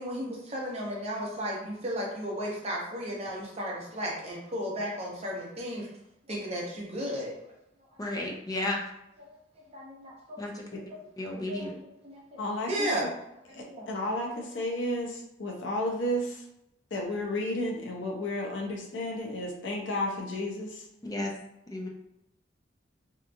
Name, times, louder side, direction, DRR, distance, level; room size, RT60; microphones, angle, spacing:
voice 1, 0.0-5.9 6.3-7.4 9.3-9.4 9.7-10.4 11.3-11.7 12.0-12.4 12.7-13.1 13.7-13.9, equal, 35° right, -3 dB, 0.7 m, -34 dB
voice 2, 8.0-8.8 10.4-10.6 11.2-11.7 21.0-21.3 21.7-21.9, left 1 dB, 20° left, -1 dB, 0.5 m, -33 dB
voice 3, 12.4-12.9 13.5-16.4 16.9-20.8, left 1 dB, 75° left, 0 dB, 0.6 m, -32 dB
2.9 x 2.3 x 2.5 m, 0.85 s
head